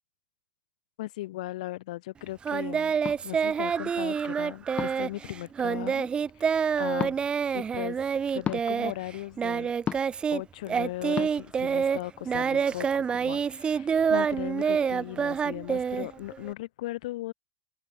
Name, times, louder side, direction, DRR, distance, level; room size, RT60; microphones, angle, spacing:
voice 1, 1.0-3.0 3.2-6.1 6.3-6.5 6.8-7.2 7.5-8.0 8.3-9.7 10.3-17.3, left 16 dB, 80° left, 3.8 m, -37 dB
Singing, 2.4-10.4 10.7-16.5, right 6 dB, 25° right, 0.5 m, -27 dB
sound 1, 3.0-3.2 4.8-5.1 7.0-7.2 8.4-8.6 9.9-10.2 11.2-11.3, left 9 dB, 35° left, 3.9 m, -32 dB
supercardioid pair, 105°, 4 cm